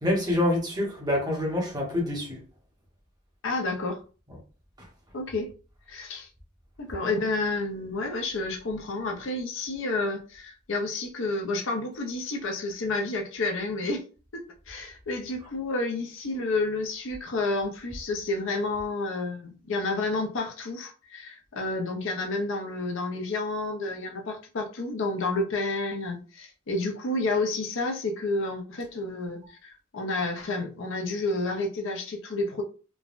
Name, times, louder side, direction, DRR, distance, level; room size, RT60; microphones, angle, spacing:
voice 1, 0.0-2.4, left 1 dB, 20° right, 0.8 m, -26 dB
voice 2, 3.4-4.0 5.1-5.5 5.9-6.3 6.8-14.1 14.3-32.6, left 2 dB, 65° left, 0.6 m, -30 dB
3.2 x 2.1 x 2.5 m
head